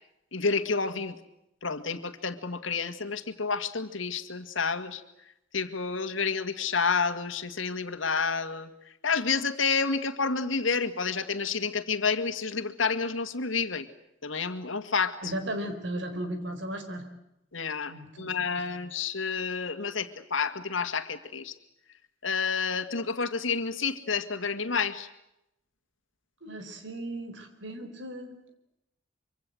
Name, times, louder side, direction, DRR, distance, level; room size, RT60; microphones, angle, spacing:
voice 1, 0.3-1.2 1.6-5.0 5.5-8.7 9.0-13.9 14.2-15.3 17.5-21.5 22.2-25.1, left 5 dB, 90° left, 9 dB, 2.1 m, -29 dB
voice 2, 15.2-17.1 17.9-18.6 26.4-28.3, right 1 dB, 70° right, 7 dB, 4.6 m, -36 dB
25.0 x 25.0 x 7.9 m, 0.85 s
head